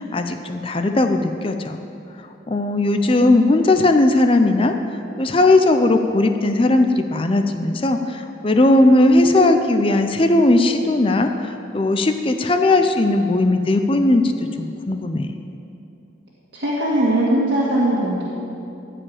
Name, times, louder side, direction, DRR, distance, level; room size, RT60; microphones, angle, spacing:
voice 1, 0.0-1.8 2.5-4.7 5.2-15.4, left 2 dB, 30° left, 6 dB, 0.5 m, -17 dB
voice 2, 16.5-18.2, right 1 dB, 65° right, -7 dB, 1.9 m, -19 dB
14.5 x 5.0 x 8.6 m, 2.7 s
head